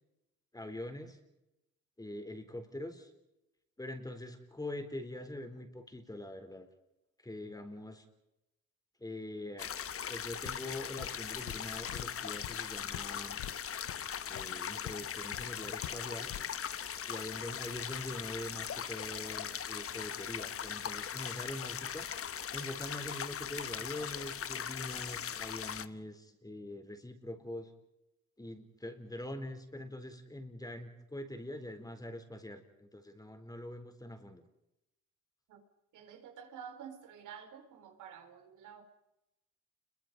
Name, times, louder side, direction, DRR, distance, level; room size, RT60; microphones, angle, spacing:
voice 1, 0.5-1.2 2.0-3.1 3.8-6.7 7.2-8.0 9.0-9.7 10.1-13.4 14.3-16.3 17.1-22.1 22.5-27.7 28.4-34.4, left 1 dB, 10° left, 7 dB, 4.0 m, -44 dB
sound 1, 9.6-25.9, left 8 dB, 50° left, 1.2 m, -40 dB
Walk footsteps, 10.4-10.7 11.0-15.1 15.3-15.6 15.8-16.6, left 13 dB, 85° left, 0.9 m, -45 dB
voice 2, 35.9-38.8, right 8 dB, 85° right, 7 dB, 3.8 m, -50 dB
29.0 x 23.0 x 5.4 m, 0.92 s
cardioid pair, 90°, 30 cm